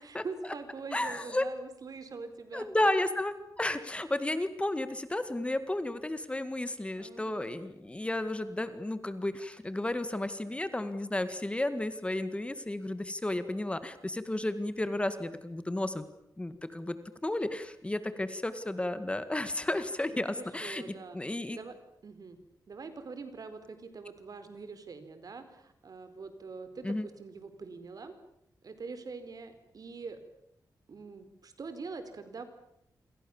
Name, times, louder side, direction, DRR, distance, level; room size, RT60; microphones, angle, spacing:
voice 1, 0.0-2.7 7.0-7.5 20.1-21.2 21.5-21.8 22.0-22.4 22.7-28.1 28.6-30.2 30.9-32.4, right 4 dB, 60° right, 10 dB, 4.3 m, -44 dB
voice 2, 0.9-1.5 2.5-16.0 16.4-17.0 17.2-21.6 26.8-27.1, left 1 dB, 15° left, 11 dB, 1.9 m, -33 dB
28.0 x 27.0 x 7.2 m, 0.78 s
wide cardioid pair, 125°, 7 cm